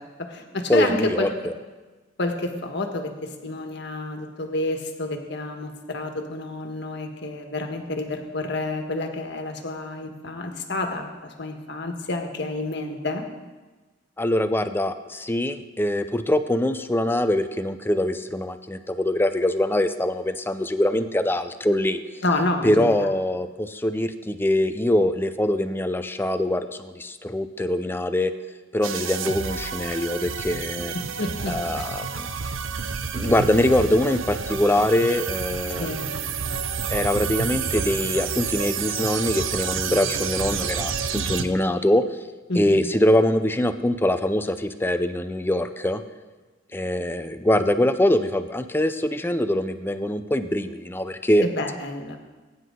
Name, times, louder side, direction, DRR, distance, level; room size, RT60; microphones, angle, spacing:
voice 1, 0.0-1.3 2.2-13.2 22.2-23.1 30.9-31.9 35.8-36.0 42.5-42.8 51.4-52.2, left 2 dB, 60° left, 4 dB, 1.5 m, -29 dB
voice 2, 0.7-1.5 14.2-22.0 22.6-28.3 28.7-30.9 31.5-32.3 33.1-35.9 36.9-42.0 42.6-46.0 46.7-51.4, left 1 dB, 10° left, 10 dB, 0.5 m, -23 dB
sound 1, 28.8-41.4, right 6 dB, 80° right, 0.7 m, -29 dB
20.5 x 9.6 x 3.8 m, 1.2 s
head